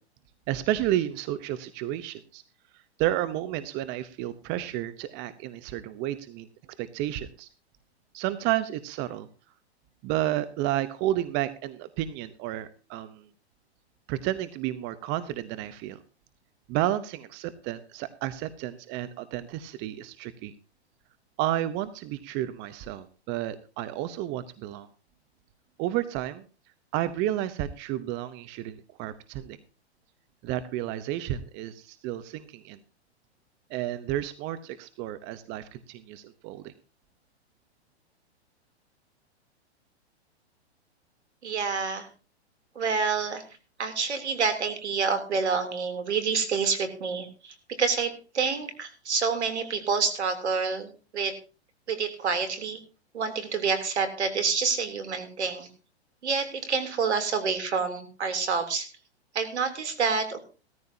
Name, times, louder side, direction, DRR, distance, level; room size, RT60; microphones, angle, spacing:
voice 1, 0.5-2.4 3.0-6.5 6.8-7.5 8.1-9.3 10.0-13.3 14.1-16.0 16.7-20.5 21.4-24.9 25.8-26.4 26.9-29.6 30.4-32.8 33.7-36.7, right 13 dB, 35° right, 13 dB, 1.0 m, -31 dB
voice 2, 41.4-42.1 42.7-43.4 43.8-51.4 51.9-52.8 53.1-55.7 56.2-58.9 59.3-60.4, right 5 dB, 80° right, 8 dB, 3.4 m, -28 dB
17.0 x 14.0 x 2.8 m, 0.34 s
hypercardioid pair, 120°, 33 cm